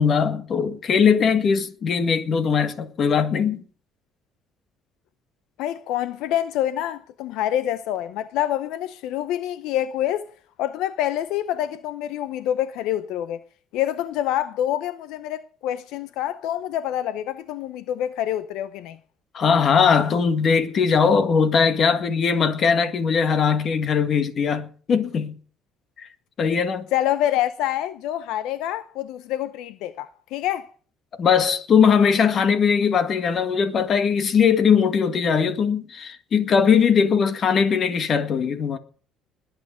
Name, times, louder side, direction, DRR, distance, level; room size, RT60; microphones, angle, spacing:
voice 1, 0.0-3.6 19.3-25.4 26.0-26.1 26.4-26.9 31.2-38.8, left 6 dB, 40° left, 1.9 m, -20 dB
voice 2, 5.6-10.3 10.6-13.4 13.7-19.0 26.9-30.7, left 12 dB, 75° left, 0.7 m, -26 dB
20.5 x 9.1 x 5.0 m
cardioid pair, 130°, 0 cm